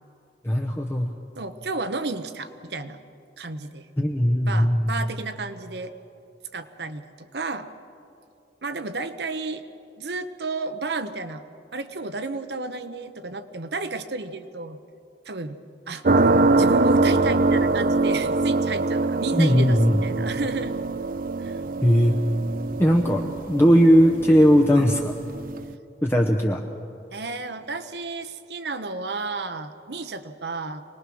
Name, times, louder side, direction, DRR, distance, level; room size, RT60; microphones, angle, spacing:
voice 1, 0.4-1.1 4.0-5.0 19.3-20.0 21.8-22.2 22.8-25.1 26.0-26.6, equal, 15° left, 0 dB, 0.9 m, -18 dB
voice 2, 1.4-3.0 3.4-3.9 4.5-5.9 6.5-7.7 8.6-9.7 10.0-11.4 11.7-14.8 15.2-15.6 15.9-16.0 16.6-20.7 21.4-21.6 23.1-23.3 27.1-30.8, right 3 dB, 70° right, 10 dB, 1.0 m, -32 dB
sound 1, 16.0-25.7, right 3 dB, 50° right, 0.5 m, -23 dB
24.5 x 20.0 x 6.3 m, 2.7 s
head